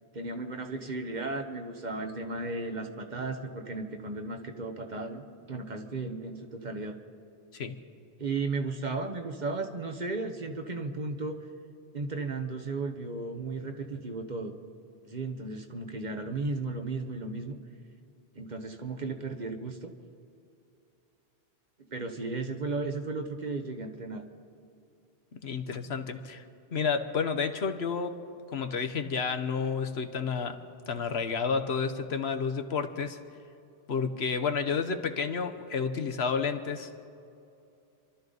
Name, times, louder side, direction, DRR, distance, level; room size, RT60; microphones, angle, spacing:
voice 1, 0.1-7.0 8.2-11.4 11.9-14.5 15.0-17.6 18.3-19.9 21.9-24.2, right 3 dB, 45° right, 5 dB, 1.1 m, -35 dB
voice 2, 25.4-26.4 26.7-28.2 28.5-30.6 30.9-33.2 33.9-36.9, left 5 dB, 75° left, 8 dB, 1.2 m, -30 dB
29.0 x 12.5 x 4.0 m, 2.6 s
omnidirectional pair, 1.1 m